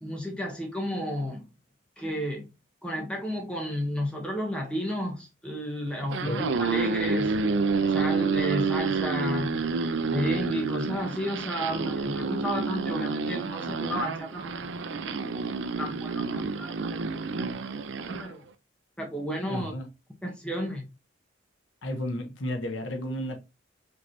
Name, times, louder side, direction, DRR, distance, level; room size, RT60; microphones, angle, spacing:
voice 1, 0.0-1.5 2.0-2.5 2.8-7.4 7.9-9.7 10.1-14.7 15.1-15.2 15.8-17.4 17.9-18.4 19.0-19.7 20.2-20.8, equal, 5° left, 1.2 m, -32 dB
voice 2, 6.0-6.5 19.5-19.9 21.8-23.4, equal, 80° left, 1.0 m, -33 dB
sound 1, 6.0-18.3, right 4 dB, 65° right, 0.5 m, -29 dB
5.1 x 3.2 x 2.9 m
head